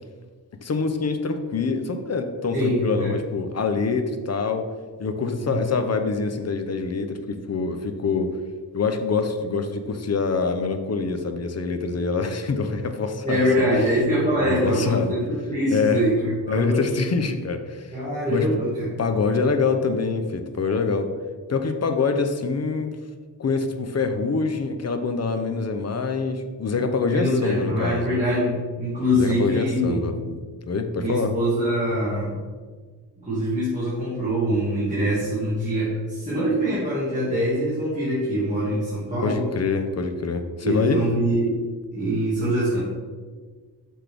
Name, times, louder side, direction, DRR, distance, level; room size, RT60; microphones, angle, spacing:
voice 1, 0.6-4.7 5.0-8.4 8.7-13.5 14.4-15.1 15.7-16.0 16.5-18.0 18.3-18.5 19.0-21.1 21.5-22.9 23.4-28.2 29.2-30.3 30.7-31.3 39.2-41.0, left 4 dB, 40° left, 7 dB, 0.5 m, -25 dB
voice 2, 2.5-3.2 5.4-5.7 13.2-16.9 17.9-19.0 27.1-30.0 31.0-32.4 33.2-39.5 40.6-41.6 41.9-42.8, equal, 20° right, -11 dB, 1.9 m, -24 dB
6.2 x 5.9 x 3.4 m, 1.5 s
wide cardioid pair, 160°, 41 cm